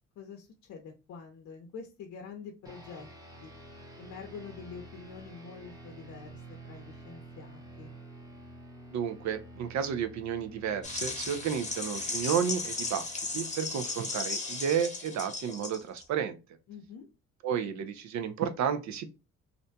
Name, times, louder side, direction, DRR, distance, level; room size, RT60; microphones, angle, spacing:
voice 1, 0.2-3.1 3.4-3.5 4.0-7.9 16.7-17.1, left 5 dB, 70° left, 2 dB, 0.6 m, -46 dB
sound 1, 2.6-14.3, right 1 dB, 10° right, 0.7 m, -50 dB
voice 2, 8.9-13.0 13.3-16.4 17.4-19.1, right 8 dB, 65° right, 9 dB, 0.5 m, -32 dB
sound 2, 10.8-16.0, left 3 dB, 25° left, 0.9 m, -36 dB
2.5 x 2.2 x 2.7 m, 0.29 s
cardioid pair, 90°, 30 cm